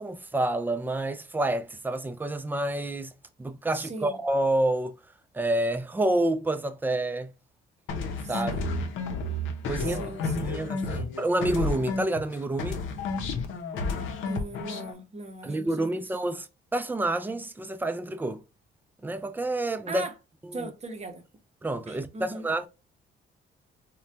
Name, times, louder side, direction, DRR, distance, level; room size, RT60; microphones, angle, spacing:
voice 1, 0.0-3.1 3.4-4.9 5.3-7.3 8.3-8.6 9.7-10.0 10.4-12.8 15.4-16.5 16.7-18.4 19.0-20.0 21.6-22.7, right 1 dB, 10° right, 0.3 m, -28 dB
voice 2, 3.7-4.2 8.2-8.7 9.8-10.9 14.2-16.1 19.9-20.1 20.5-21.2 21.9-22.5, right 2 dB, 35° right, 0.7 m, -39 dB
sound 1, 7.9-12.3 12.6-14.9, left 3 dB, 80° left, 0.6 m, -31 dB
3.2 x 2.2 x 2.6 m
cardioid pair, 90°, 20 cm